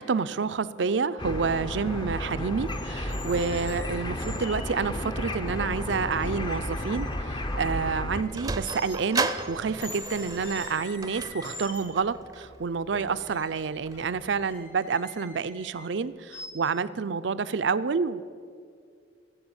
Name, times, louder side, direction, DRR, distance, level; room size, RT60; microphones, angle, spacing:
voice 1, 0.0-18.2, right 5 dB, 75° right, 14 dB, 0.5 m, -29 dB
sound 1, 1.2-8.2, left 1 dB, 25° left, 0.7 m, -32 dB
sound 2, 2.7-4.6 5.6-5.7 6.2-8.4 8.6-9.5 9.8-12.1 13.2-15.9 16.3-16.5, left 3 dB, 75° left, 3.2 m, -44 dB
Sliding door, 7.9-14.4, right 3 dB, 20° right, 0.6 m, -36 dB
15.5 x 7.7 x 8.0 m, 2.2 s
head